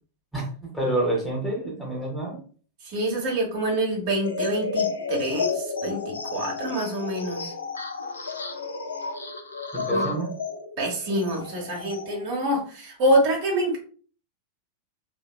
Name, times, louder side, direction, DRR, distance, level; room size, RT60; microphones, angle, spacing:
voice 1, 0.3-2.4 9.7-10.3, right 1 dB, 5° left, -2 dB, 0.8 m, -28 dB
voice 2, 2.8-7.5 9.9-10.1 10.8-13.8, right 1 dB, 45° right, -2 dB, 1.0 m, -26 dB
sound 1, 4.2-12.3, left 4 dB, 75° left, 0.4 m, -32 dB
2.7 x 2.2 x 2.3 m, 0.42 s
figure-of-eight pair, 90°, 0 cm